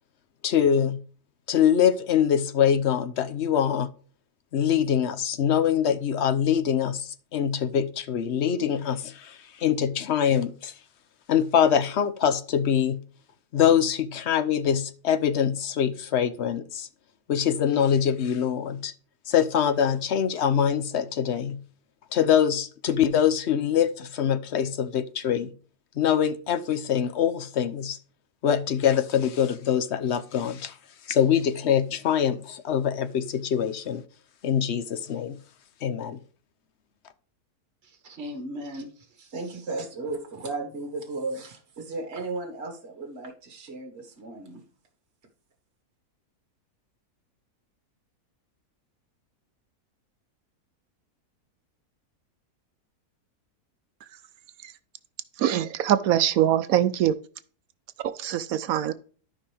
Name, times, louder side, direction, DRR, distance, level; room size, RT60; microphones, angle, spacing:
voice 1, 0.4-1.0 1.5-3.9 4.5-10.7 11.3-13.0 13.5-16.9 17.3-18.9 19.3-21.6 22.1-25.5 26.0-28.0 28.4-30.8 31.1-34.0 34.4-35.4 35.8-36.2, left 8 dB, 55° left, 0.9 m, -24 dB
voice 2, 37.8-44.6, right 2 dB, 45° right, 1.8 m, -35 dB
voice 3, 55.4-57.1 58.2-58.9, right 11 dB, 75° right, 1.0 m, -23 dB
12.5 x 5.5 x 3.4 m
omnidirectional pair, 1.6 m